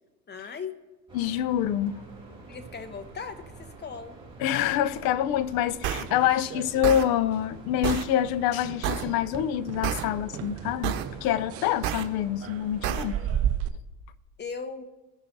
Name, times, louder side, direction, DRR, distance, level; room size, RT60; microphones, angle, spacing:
voice 1, 0.3-0.8 2.5-4.2 14.4-14.8, left 5 dB, 20° left, 0.9 m, -38 dB
voice 2, 1.1-1.9 4.4-13.2, left 11 dB, 50° left, 0.6 m, -26 dB
sound 1, 1.1-13.1, right 3 dB, 10° right, 3.2 m, -47 dB
sound 2, 5.6-7.1 7.3-7.7 8.0-8.2 8.6-13.7, right 10 dB, 30° right, 0.5 m, -35 dB
sound 3, 5.8-6.0 6.8-7.0 7.8-8.0 8.8-9.0 9.8-10.0 10.8-11.0 11.8-12.0 12.8-13.0, right 10 dB, 60° right, 1.1 m, -28 dB
16.5 x 5.7 x 2.6 m
hypercardioid pair, 85°, 49 cm